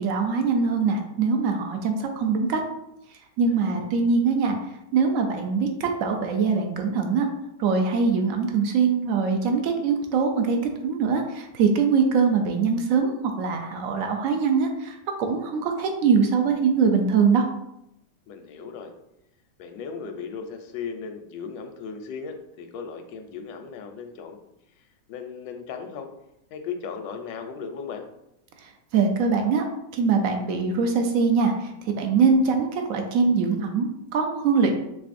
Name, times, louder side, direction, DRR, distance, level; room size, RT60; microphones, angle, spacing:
voice 1, 0.0-2.6 3.4-4.6 4.9-7.3 7.6-10.6 10.8-17.5 28.6-29.7 29.9-34.7, right 5 dB, 75° right, 4 dB, 0.7 m, -23 dB
voice 2, 3.5-3.9 18.3-18.9 19.6-24.4 24.8-26.1 26.5-28.1, left 6 dB, 85° left, 5 dB, 1.3 m, -37 dB
4.7 x 3.6 x 2.5 m, 0.83 s
omnidirectional pair, 1.9 m